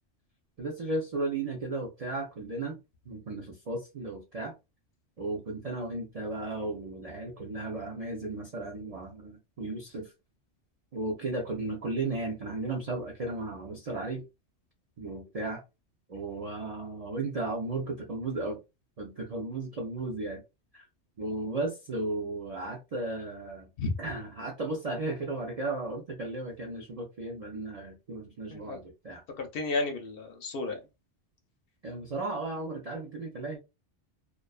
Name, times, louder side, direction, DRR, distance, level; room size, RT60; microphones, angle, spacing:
voice 1, 0.6-2.8 3.1-4.5 5.2-10.1 10.9-14.2 15.0-15.6 16.1-18.6 19.0-20.4 20.7-20.8 21.2-23.7 24.0-29.2 31.8-33.6, right 2 dB, 50° right, 0.4 m, -35 dB
voice 2, 29.4-30.8, left 3 dB, 60° left, 0.7 m, -32 dB
2.4 x 2.2 x 2.3 m
omnidirectional pair, 1.2 m